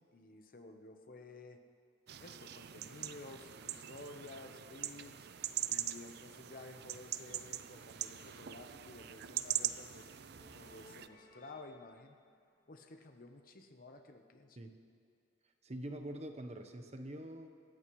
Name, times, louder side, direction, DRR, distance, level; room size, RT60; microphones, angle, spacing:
voice 1, 0.0-1.6 2.2-5.3 5.7-10.1 10.5-12.2 12.7-14.6, left 2 dB, 45° left, 5 dB, 1.0 m, -53 dB
sound 1, 2.1-11.1, right 12 dB, 55° right, 0.5 m, -42 dB
sound 2, 4.2-13.2, left 1 dB, 65° left, 3.8 m, -65 dB
voice 2, 15.6-17.5, right 1 dB, 35° right, 6 dB, 1.0 m, -44 dB
26.5 x 14.5 x 3.2 m, 2.3 s
head